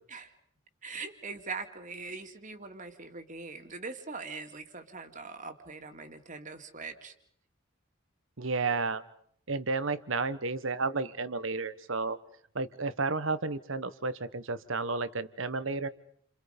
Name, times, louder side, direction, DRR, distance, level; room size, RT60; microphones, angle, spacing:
voice 1, 0.8-7.1, right 4 dB, 40° right, 6 dB, 2.4 m, -42 dB
voice 2, 8.4-9.0 9.5-12.2 12.5-15.9, right 3 dB, 65° right, 14 dB, 1.3 m, -32 dB
30.0 x 27.0 x 5.3 m, 0.64 s
head